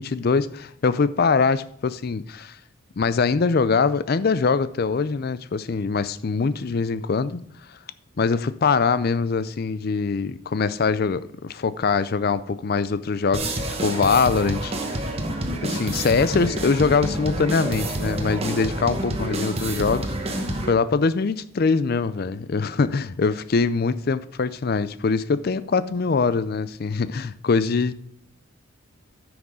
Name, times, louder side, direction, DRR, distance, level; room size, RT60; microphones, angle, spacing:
voice 1, 0.0-2.6 3.0-7.4 8.2-15.1 15.6-27.9, left 4 dB, 45° left, 0.4 m, -23 dB
sound 1, 13.3-20.7, right 1 dB, 30° right, 1.0 m, -28 dB
9.4 x 6.1 x 4.9 m
head